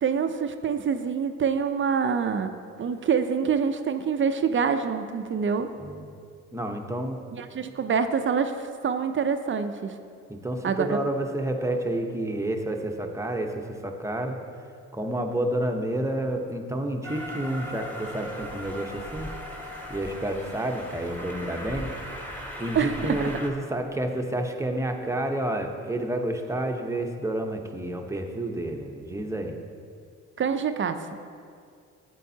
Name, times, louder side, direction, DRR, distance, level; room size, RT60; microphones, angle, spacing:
voice 1, 0.0-2.5 2.8-5.7 7.3-9.9 10.6-11.0 22.7-23.3 30.4-31.0, right 6 dB, 40° right, 8 dB, 0.6 m, -26 dB
voice 2, 6.5-7.2 10.3-14.4 14.9-19.3 19.9-21.9 22.6-29.6, right 1 dB, 10° right, 3 dB, 0.9 m, -29 dB
Train, 17.0-23.5, equal, 5° left, 1.5 m, -38 dB
11.0 x 8.3 x 2.8 m, 2.3 s
supercardioid pair, 65°, 31 cm